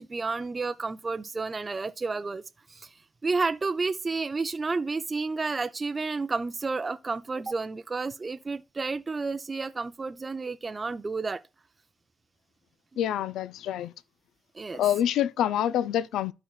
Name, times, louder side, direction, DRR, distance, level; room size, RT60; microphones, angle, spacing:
voice 1, 0.0-2.4 2.7-2.9 3.2-11.4 14.5-14.8, right 4 dB, 30° right, 0.4 m, -31 dB
voice 2, 13.0-13.9 14.7-16.3, left 11 dB, 80° left, 0.4 m, -26 dB
12.5 x 4.3 x 2.3 m
cardioid pair, 90°, 0 cm